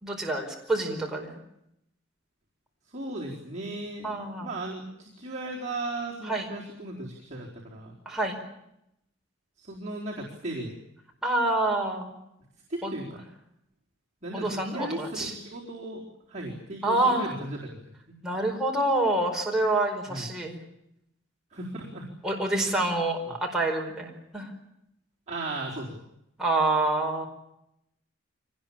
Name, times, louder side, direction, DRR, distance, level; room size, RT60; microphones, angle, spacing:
voice 1, 0.0-1.4 4.0-4.5 6.2-6.5 8.0-8.4 11.2-12.1 12.8-12.9 14.3-15.3 16.8-17.3 18.2-20.6 22.2-24.5 26.4-27.3, right 2 dB, 5° right, -1 dB, 4.8 m, -27 dB
voice 2, 2.9-7.9 9.6-10.8 12.7-13.2 14.2-17.8 20.1-20.3 21.5-22.1 22.6-23.0 23.3-23.4 25.3-26.0, right 2 dB, 35° right, -4 dB, 4.2 m, -36 dB
25.0 x 19.5 x 8.8 m, 0.81 s
head